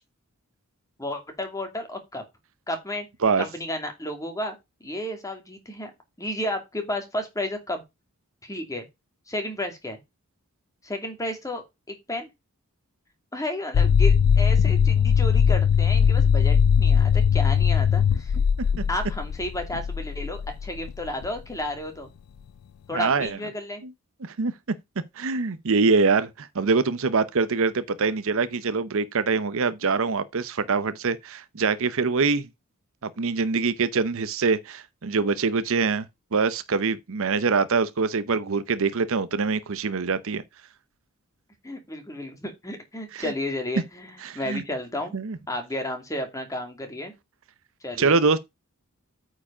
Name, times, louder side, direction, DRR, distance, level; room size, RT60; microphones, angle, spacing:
voice 1, 1.0-2.2 2.7-3.1 3.4-5.9 6.2-7.8 8.4-8.8 9.3-10.0 10.8-12.3 13.3-18.3 18.9-22.1 22.9-23.8 41.6-45.1 45.5-47.1 47.8-48.2, left 1 dB, 15° left, 2.4 m, -32 dB
sound 1, 13.7-21.4, left 7 dB, 80° left, 0.4 m, -20 dB
voice 2, 22.9-23.4 24.2-24.5 25.2-32.5 33.0-36.1 36.3-40.4 43.1-43.3 44.2-44.6 45.1-45.4 48.0-48.4, right 4 dB, 65° right, 0.7 m, -24 dB
8.8 x 4.9 x 4.9 m
head